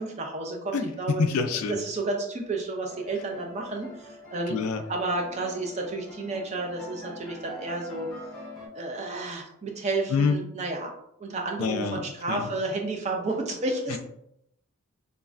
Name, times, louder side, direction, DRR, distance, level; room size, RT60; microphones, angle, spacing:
voice 1, 0.0-1.2 1.7-4.6 4.9-8.1 8.7-10.9 11.2-14.0, right 2 dB, 30° right, 1 dB, 0.4 m, -31 dB
voice 2, 1.2-1.8 4.5-4.8 10.1-10.4 11.6-12.0 12.3-12.4, left 5 dB, 80° left, 7 dB, 0.4 m, -25 dB
sound 1, 2.9-8.7, left 2 dB, ahead, 1.2 m, -44 dB
3.1 x 2.4 x 2.4 m, 0.77 s
head